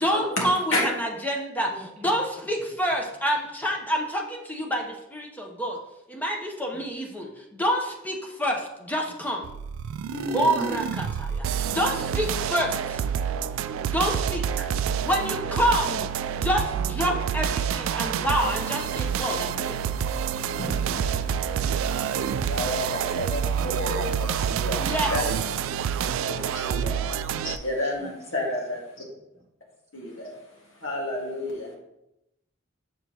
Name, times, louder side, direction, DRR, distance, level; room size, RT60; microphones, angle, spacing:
voice 1, 0.0-5.8 6.1-9.5 10.3-13.0 13.9-14.7 15.0-16.0 16.3-19.8 24.8-25.1, equal, 10° left, 1 dB, 0.8 m, -27 dB
voice 2, 1.7-2.1 6.7-6.8 25.3-25.9 27.8-28.1 29.0-29.1, right 1 dB, 35° right, 1 dB, 0.9 m, -45 dB
sound 1, 9.4-27.6, right 8 dB, 75° right, 0.3 m, -28 dB
voice 3, 10.1-10.7 20.6-25.2 26.3-27.1 27.4-28.8 29.9-30.3 30.8-31.7, left 1 dB, 75° left, -2 dB, 1.7 m, -31 dB
7.0 x 5.1 x 2.9 m, 0.88 s
head